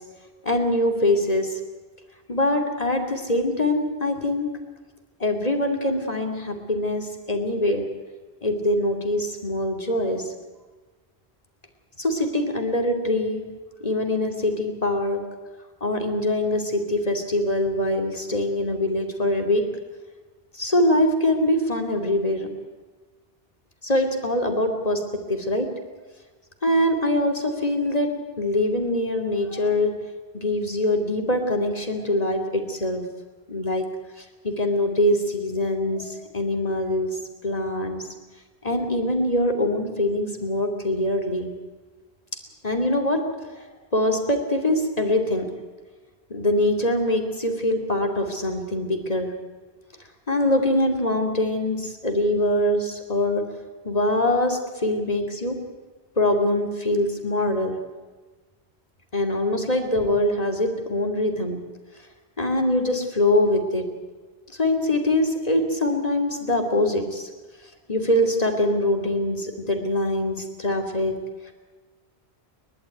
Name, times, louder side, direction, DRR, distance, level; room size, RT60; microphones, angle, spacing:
voice 1, 0.4-1.6 2.3-4.6 5.2-7.9 8.4-10.2 12.0-13.5 13.8-15.2 15.8-19.7 20.5-22.5 23.8-25.8 26.6-30.0 30.3-33.1 33.5-33.9 34.4-37.1 37.4-38.1 38.6-41.5 42.6-43.3 43.9-45.5 46.3-49.3 50.3-53.5 53.8-55.6 56.2-57.8 59.1-61.7 62.4-63.9 64.6-67.3 67.9-71.2, left 1 dB, 35° left, 4 dB, 2.9 m, -23 dB
29.5 x 12.5 x 9.3 m, 1.3 s
omnidirectional pair, 1.1 m